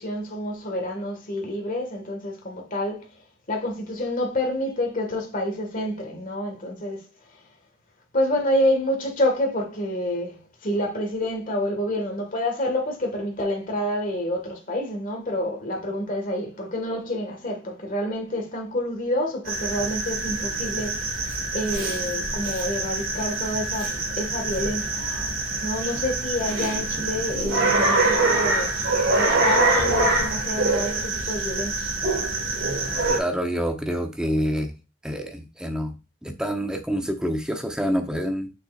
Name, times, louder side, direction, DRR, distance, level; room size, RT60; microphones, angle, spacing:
voice 1, 0.0-3.1 3.5-7.0 8.1-21.1 21.5-25.0 25.6-28.7 29.1-31.8, left 1 dB, 45° left, 1.8 m, -28 dB
sound 1, 19.5-33.2, right 2 dB, 80° right, 2.6 m, -25 dB
voice 2, 33.1-34.7 35.0-38.5, equal, 5° right, 0.8 m, -27 dB
6.5 x 6.2 x 2.5 m
head